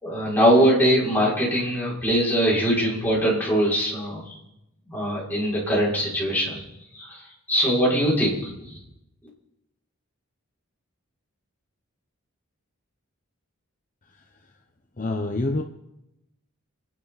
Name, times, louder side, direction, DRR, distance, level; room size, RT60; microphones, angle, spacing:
voice 1, 0.0-4.4 4.9-6.6 6.9-7.2 7.5-8.8, equal, 10° left, -8 dB, 6.0 m, -22 dB
voice 2, 15.0-15.6, left 2 dB, 40° left, 4 dB, 0.9 m, -26 dB
30.0 x 10.5 x 4.1 m, 0.89 s
head